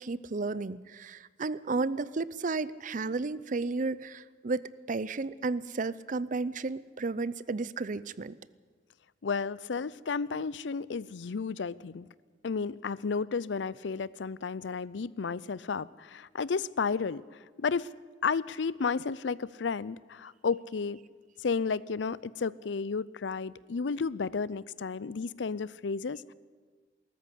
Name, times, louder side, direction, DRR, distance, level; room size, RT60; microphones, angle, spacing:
voice 1, 0.0-4.6 4.9-8.4, right 3 dB, 45° right, 18 dB, 0.6 m, -33 dB
voice 2, 9.2-12.1 12.4-17.2 17.6-17.9 18.2-21.0 21.4-26.3, left 5 dB, 85° left, 20 dB, 0.5 m, -32 dB
19.0 x 14.0 x 9.9 m, 1.5 s
head